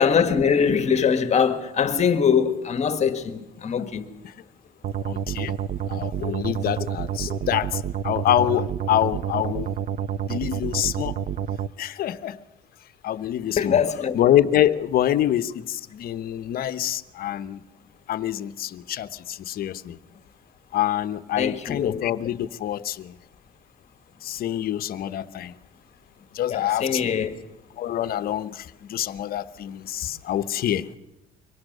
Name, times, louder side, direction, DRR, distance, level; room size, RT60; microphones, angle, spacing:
voice 1, 0.0-4.0 6.2-6.3 7.3-7.4 13.6-14.2 21.4-22.0 26.5-27.4, left 7 dB, 40° left, 1.7 m, -22 dB
sound 1, 4.8-11.7, right 9 dB, 50° right, 0.7 m, -29 dB
voice 2, 5.0-5.5 5.9-9.8 10.3-11.1 11.8-12.4 13.0-13.8 14.1-17.6 18.1-20.0 20.7-23.1 24.2-25.5 26.3-27.3 27.8-30.9, left 12 dB, 60° left, 1.0 m, -26 dB
23.5 x 18.5 x 6.7 m
cardioid pair, 110°, 17 cm